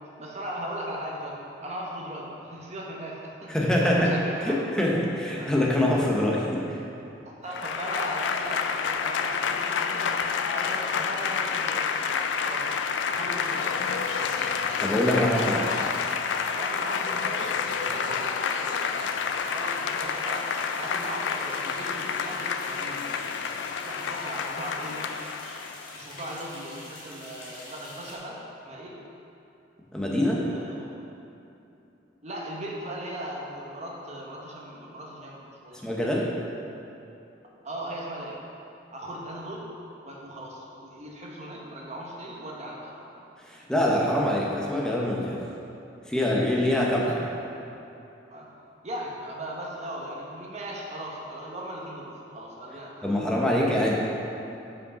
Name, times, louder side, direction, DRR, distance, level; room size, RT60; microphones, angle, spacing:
voice 1, 0.0-4.6 5.4-5.5 7.3-12.7 13.0-14.5 15.1-16.0 16.5-23.4 23.8-25.1 25.9-29.0 30.4-30.9 32.2-35.8 37.6-38.4 38.9-39.7 40.0-43.0 46.9-47.2 48.3-48.5 48.8-53.7, right 1 dB, 40° right, -3 dB, 1.0 m, -38 dB
voice 2, 3.5-4.1 4.4-6.8 14.8-15.6 29.9-30.5 35.8-36.3 43.4-45.5 46.1-47.1 53.0-53.9, left 1 dB, 5° left, -4 dB, 0.8 m, -24 dB
Applause / Crowd, 7.5-26.0, left 6 dB, 75° left, 0.3 m, -29 dB
sound 1, 13.4-28.2, left 2 dB, 50° left, 1.4 m, -45 dB
5.4 x 5.2 x 4.9 m, 2.9 s
head